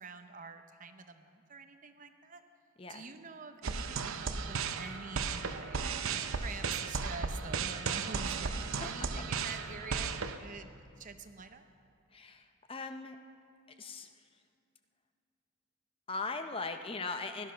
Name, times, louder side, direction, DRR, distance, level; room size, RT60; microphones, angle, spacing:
voice 1, 0.0-2.4 2.9-8.5 8.8-11.6, right 4 dB, 35° right, 8 dB, 0.7 m, -47 dB
sound 1, 3.6-10.4, right 5 dB, 70° right, 0.7 m, -35 dB
voice 2, 8.6-8.9 12.1-13.2 13.8-14.1 16.1-17.5, left 3 dB, 25° left, 7 dB, 0.6 m, -39 dB
17.5 x 11.5 x 5.6 m, 2.5 s
head